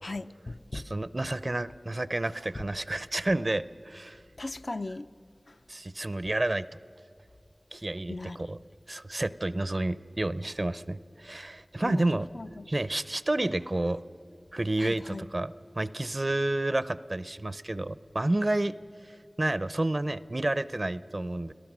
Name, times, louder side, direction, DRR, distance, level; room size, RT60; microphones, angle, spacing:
voice 1, 0.0-0.8 4.4-5.1 8.1-8.4 11.8-12.7 14.8-15.3, left 2 dB, 65° left, 0.5 m, -37 dB
voice 2, 0.7-4.2 5.7-6.7 7.7-8.6 8.9-12.3 12.7-14.0 14.5-18.7 19.4-21.5, right 2 dB, 50° right, 0.6 m, -30 dB
29.5 x 18.5 x 6.1 m
wide cardioid pair, 55°, 0 cm